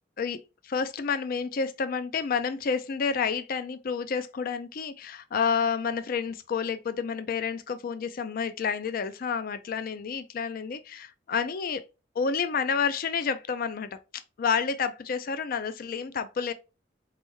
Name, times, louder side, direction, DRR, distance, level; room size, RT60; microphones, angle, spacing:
voice 1, 0.2-11.8 12.2-14.0 14.4-16.5, left 6 dB, 50° left, 0.4 m, -29 dB
4.3 x 3.3 x 3.0 m
head